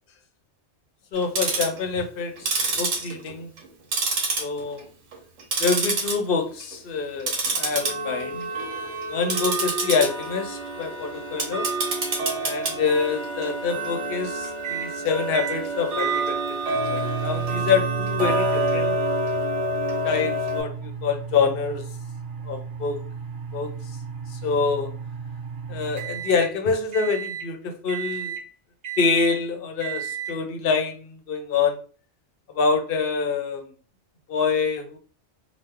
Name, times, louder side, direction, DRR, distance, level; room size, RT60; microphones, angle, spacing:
voice 1, 1.1-3.5 4.4-4.9 5.6-8.5 9.1-11.7 12.4-16.4 16.7-18.9 20.0-21.8 22.5-23.0 23.5-23.7 24.3-24.9 25.7-28.3 29.0-31.8 32.5-33.6 34.3-35.0, left 5 dB, 60° left, 5 dB, 0.6 m, -26 dB
Tick-tock, 1.2-1.8 2.4-3.7 3.9-4.8 5.1-6.1 6.5-6.8 7.2-20.6, right 2 dB, 75° right, 1.1 m, -27 dB
sound 1, 14.6-14.9 15.3-15.6 16.0-26.5 26.9-27.5 27.9-28.4 28.8-29.4 29.8-30.4, right 7 dB, 55° right, 0.6 m, -33 dB
3.0 x 2.0 x 3.3 m, 0.39 s
omnidirectional pair, 1.2 m